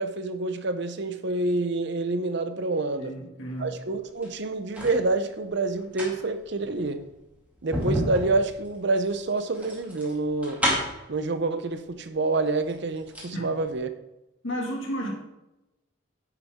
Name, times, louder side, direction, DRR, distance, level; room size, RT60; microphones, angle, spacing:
voice 1, 0.0-3.1 3.6-7.0 7.6-10.6 11.1-13.9, right 3 dB, 55° right, 10 dB, 0.7 m, -27 dB
voice 2, 3.0-3.7 13.3-13.5 14.4-15.1, equal, 65° left, -1 dB, 2.1 m, -32 dB
sound 1, 4.0-5.0 5.7-11.1 12.1-12.2 12.5-13.4 13.6-13.7, equal, 5° right, 2.2 m, -31 dB
9.9 x 7.0 x 3.6 m, 0.96 s
head